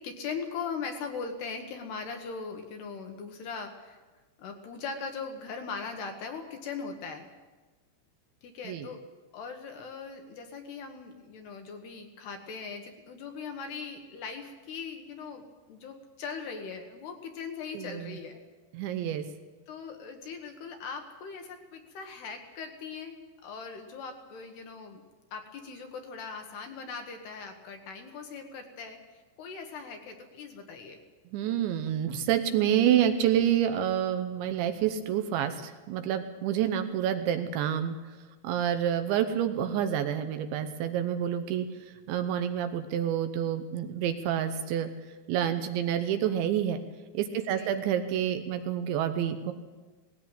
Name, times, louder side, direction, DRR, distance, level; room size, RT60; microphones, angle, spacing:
voice 1, 0.0-4.0 4.4-7.3 8.4-9.1 9.3-18.4 19.7-25.0 25.3-31.0 47.3-47.7, left 5 dB, 65° left, 5 dB, 2.9 m, -40 dB
voice 2, 17.7-18.1 18.7-19.2 31.3-38.0 38.4-41.7 42.1-44.9 45.3-46.8 47.1-49.5, right 10 dB, 75° right, 8 dB, 3.0 m, -28 dB
18.5 x 16.5 x 9.0 m, 1.3 s
omnidirectional pair, 5.7 m